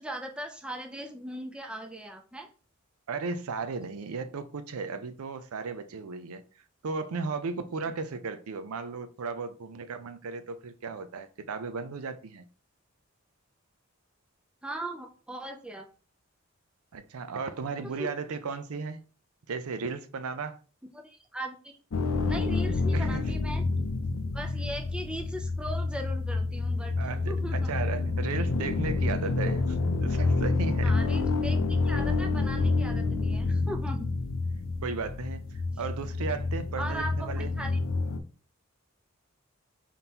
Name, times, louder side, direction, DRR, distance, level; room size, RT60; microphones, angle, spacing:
voice 1, 0.0-2.5 14.6-15.9 18.0-18.1 20.9-23.6 24.3-26.9 27.3-27.7 30.8-34.1 36.8-37.8, right 1 dB, 5° right, 0.4 m, -39 dB
voice 2, 3.1-6.4 6.8-12.5 16.9-19.0 19.5-20.6 22.9-23.3 27.0-30.9 34.8-37.5, right 4 dB, 80° right, 0.5 m, -35 dB
sound 1, 21.9-38.2, left 3 dB, 65° left, 0.5 m, -28 dB
4.0 x 3.7 x 2.8 m
head